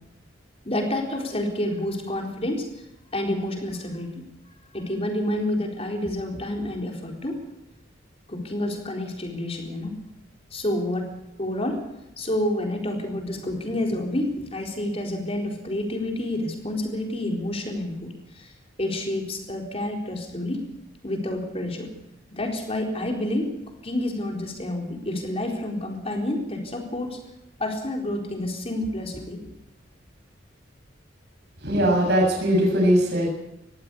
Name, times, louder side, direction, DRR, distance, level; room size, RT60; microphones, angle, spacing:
voice 1, 0.6-2.7 3.1-4.1 4.7-7.4 8.3-9.9 10.5-11.1 11.4-11.8 12.2-18.5 18.8-20.6 21.0-21.9 22.3-23.5 23.8-27.2 27.6-29.4, left 1 dB, 30° left, 2 dB, 4.2 m, -29 dB
voice 2, 31.6-33.3, equal, 60° right, 0 dB, 6.8 m, -20 dB
20.0 x 15.0 x 8.5 m, 0.90 s
head